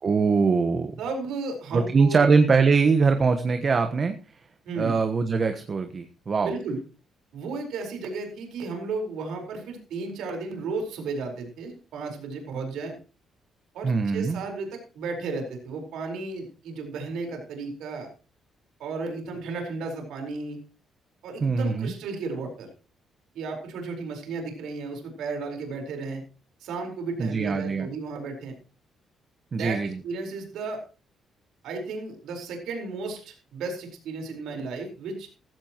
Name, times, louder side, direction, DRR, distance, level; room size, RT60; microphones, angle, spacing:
voice 1, 0.0-0.9 1.7-4.2 4.8-6.5 13.8-14.4 21.4-21.9 27.2-27.9 29.5-30.0, right 4 dB, 40° right, 7 dB, 1.2 m, -22 dB
voice 2, 1.0-2.2 4.6-5.0 6.4-6.8 7.3-13.0 13.7-18.1 18.8-20.6 21.2-22.7 23.3-26.2 26.6-28.5 29.5-30.8 31.6-35.3, right 4 dB, 85° right, 3 dB, 4.5 m, -34 dB
15.5 x 14.5 x 3.0 m, 0.36 s
cardioid pair, 90°, 0 cm